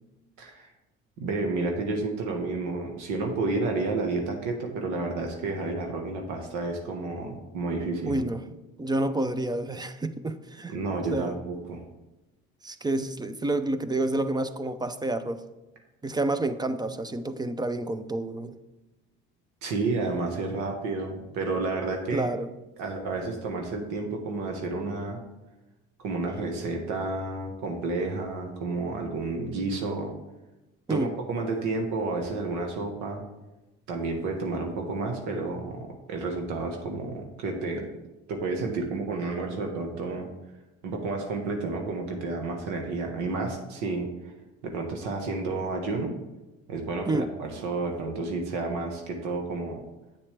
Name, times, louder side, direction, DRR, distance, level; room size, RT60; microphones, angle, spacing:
voice 1, 0.4-0.7 1.2-8.2 10.7-11.8 19.6-22.3 22.8-25.2 26.0-30.1 30.9-33.2 33.9-37.9 38.3-40.3 40.8-44.3 44.6-46.1 46.7-49.8, right 3 dB, 75° right, 2 dB, 1.3 m, -31 dB
voice 2, 8.1-8.4 8.8-10.8 11.1-11.3 12.6-15.4 16.0-18.5 22.1-22.5 30.9-31.1 47.1-47.3, right 2 dB, 15° right, 11 dB, 0.5 m, -29 dB
8.1 x 7.1 x 3.4 m, 1.0 s
supercardioid pair, 90°, 30 cm